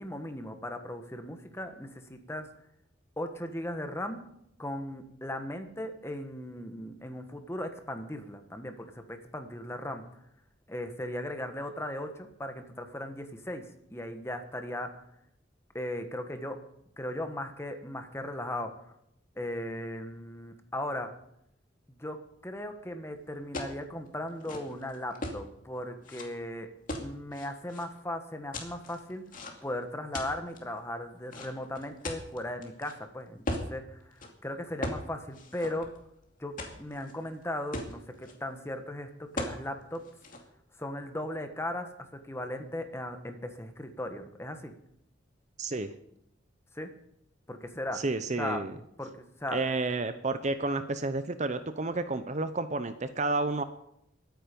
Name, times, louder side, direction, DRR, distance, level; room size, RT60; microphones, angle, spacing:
voice 1, 0.0-2.5 3.2-4.2 4.6-10.0 10.7-13.6 13.9-15.0 15.7-16.6 17.0-18.7 19.4-21.1 21.9-22.2 22.4-26.7 27.0-29.2 29.6-35.9 36.4-40.0 40.8-41.9 42.1-44.7 46.7-46.9 47.5-48.0 48.4-48.6 49.0-49.6, left 1 dB, 15° left, 6 dB, 1.4 m, -37 dB
sound 1, 23.5-23.8 24.3-25.4 26.0-26.2 26.9-27.8 28.5-29.7 30.1-30.6 31.3-32.9 33.5-33.7 34.1-34.3 34.8-35.0 35.3-36.2 36.6-37.1 37.4-37.5 37.7-38.3 39.4-39.6 39.9-40.4, left 1 dB, 45° left, 2.4 m, -38 dB
voice 2, 45.6-45.9 47.9-48.7 49.5-53.6, right 3 dB, 40° right, 11 dB, 0.7 m, -31 dB
22.0 x 9.2 x 5.3 m, 0.78 s
head